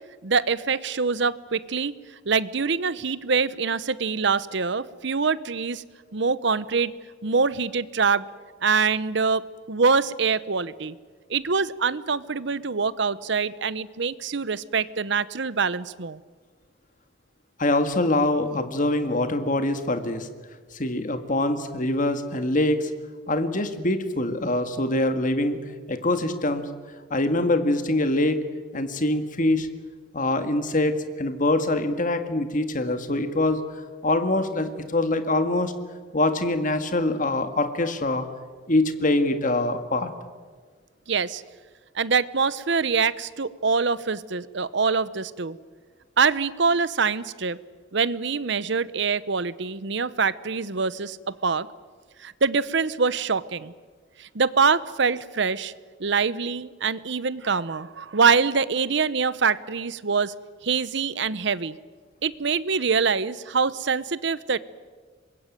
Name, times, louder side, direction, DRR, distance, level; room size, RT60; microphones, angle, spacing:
voice 1, 0.2-1.9 2.3-5.8 6.1-6.9 7.2-8.2 8.6-9.4 9.7-11.0 11.3-16.2 41.1-41.4 41.9-45.6 46.2-47.6 47.9-51.7 52.2-53.7 54.2-55.7 56.0-60.3 60.6-61.8 62.2-64.6, right 5 dB, 65° right, 17 dB, 0.8 m, -24 dB
voice 2, 17.6-20.3 20.7-22.9 23.3-25.6 25.9-26.6 27.1-28.4 28.7-29.7 30.1-33.6 34.0-35.7 36.1-38.3 38.7-40.1, left 2 dB, 40° left, 8 dB, 1.8 m, -24 dB
25.0 x 21.5 x 9.2 m, 1.5 s
head